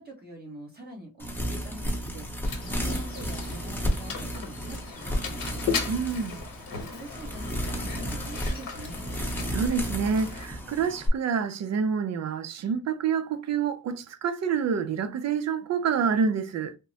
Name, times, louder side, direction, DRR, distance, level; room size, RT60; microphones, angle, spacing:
voice 1, 0.0-5.6 6.8-9.1, right 1 dB, 30° right, 1.1 m, -44 dB
sound 1, 1.2-11.1, equal, 5° left, 0.8 m, -33 dB
Mechanisms, 2.4-10.5, left 6 dB, 70° left, 1.0 m, -37 dB
voice 2, 5.9-6.4 9.5-16.8, right 6 dB, 50° right, 0.5 m, -27 dB
3.5 x 2.0 x 2.7 m
wide cardioid pair, 140°, 35 cm